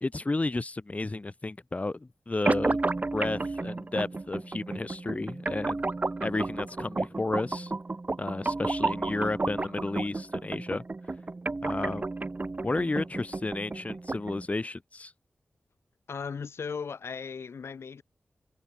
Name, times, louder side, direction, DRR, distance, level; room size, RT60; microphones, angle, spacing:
voice 1, 0.0-2.8 3.1-5.9 6.2-7.7 8.2-10.8 11.6-12.0 12.6-15.1, left 2 dB, 35° left, 1.9 m, -32 dB
sound 1, 2.5-14.5, right 3 dB, 40° right, 1.2 m, -32 dB
voice 2, 16.1-18.0, left 6 dB, 85° left, 3.8 m, -37 dB
wide cardioid pair, 65°, 4 cm